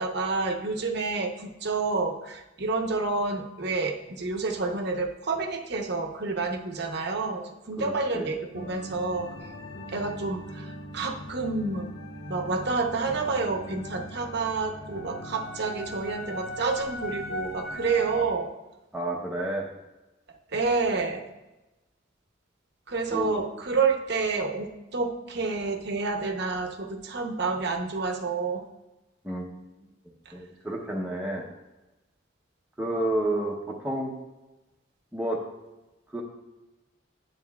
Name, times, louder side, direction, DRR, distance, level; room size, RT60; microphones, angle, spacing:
voice 1, 0.0-9.3 9.9-10.7 10.9-11.9 12.3-18.5 20.5-21.3 22.9-28.6, right 4 dB, 55° right, 4 dB, 0.8 m, -29 dB
voice 2, 7.8-8.3 18.9-19.7 23.1-23.4 29.2-29.5 30.3-31.4 32.8-34.1 35.1-35.4 36.1-36.2, right 1 dB, 5° right, -4 dB, 0.7 m, -30 dB
sound 1, 8.5-18.3, equal, 65° left, 0.8 m, -39 dB
9.3 x 8.4 x 2.3 m, 1.0 s
head